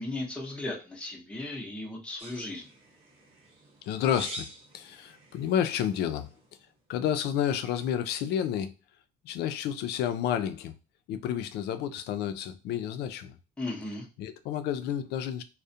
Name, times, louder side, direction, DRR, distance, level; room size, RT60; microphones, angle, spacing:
voice 1, 0.0-2.7 13.6-14.1, left 2 dB, 5° left, 0.7 m, -36 dB
sound 1, 2.2-6.7, right 1 dB, 35° right, 1.1 m, -47 dB
voice 2, 3.9-4.5 4.7-6.3 6.9-8.7 9.2-10.7 11.1-13.3 14.2-15.4, left 9 dB, 80° left, 0.4 m, -30 dB
2.3 x 2.1 x 2.7 m
cardioid pair, 110°, 17 cm